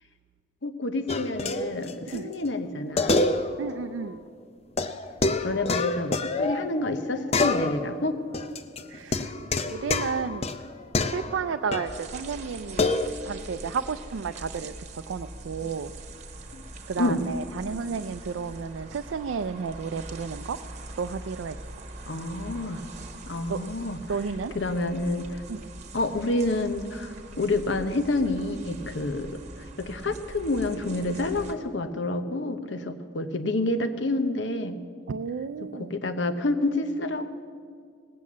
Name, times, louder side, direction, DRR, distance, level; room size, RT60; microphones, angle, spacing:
voice 1, 0.6-3.3 5.4-8.2 16.5-16.6 17.0-17.2 22.1-22.8 23.2-24.2 24.5-25.4 25.9-34.8 35.7-37.3, left 2 dB, 70° left, 9 dB, 0.9 m, -28 dB
sound 1, 1.1-2.2 2.4-2.5 3.0-3.8 4.0-4.1 4.8-7.0 7.3-8.0 8.3-12.0 12.8-13.1, left 2 dB, 35° left, 0.5 m, -27 dB
voice 2, 3.6-4.2 8.9-9.3 9.7-10.5 11.0-12.9 13.3-14.7 15.1-15.9 16.9-20.6 21.0-21.6 23.5-23.6 24.1-24.5 25.5-25.6 35.1-35.9, right 5 dB, 85° right, 8 dB, 0.4 m, -32 dB
sound 2, 11.8-31.5, right 2 dB, 40° right, 1.2 m, -42 dB
18.5 x 8.5 x 7.3 m, 2.2 s
head